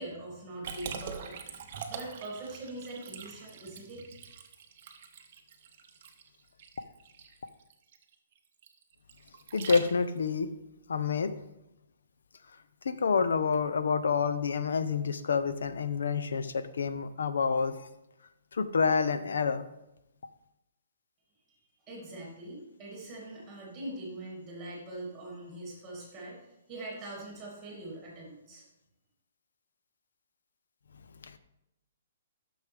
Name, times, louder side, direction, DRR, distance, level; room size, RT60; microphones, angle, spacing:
voice 1, 0.0-4.2 21.9-28.6, right 1 dB, 5° right, -4 dB, 2.4 m, -42 dB
Liquid, 0.6-10.3, right 6 dB, 30° right, 0.7 m, -44 dB
voice 2, 9.5-10.5 10.9-11.3 12.8-17.9 18.5-19.7 31.2-31.4, left 5 dB, 80° left, 12 dB, 0.6 m, -28 dB
9.7 x 6.4 x 3.4 m, 0.89 s
hypercardioid pair, 180°, 0 cm